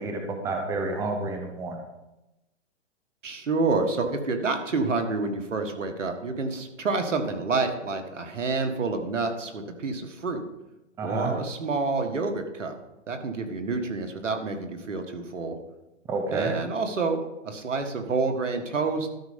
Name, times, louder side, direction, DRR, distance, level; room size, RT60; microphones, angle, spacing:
voice 1, 0.0-1.8 11.0-11.3 16.1-16.5, right 3 dB, 10° right, 4 dB, 0.8 m, -29 dB
voice 2, 3.2-10.4 11.0-12.8 13.1-15.6 16.3-19.1, right 3 dB, 85° right, 6 dB, 1.8 m, -28 dB
12.5 x 5.4 x 5.2 m, 0.96 s
hypercardioid pair, 145°, 36 cm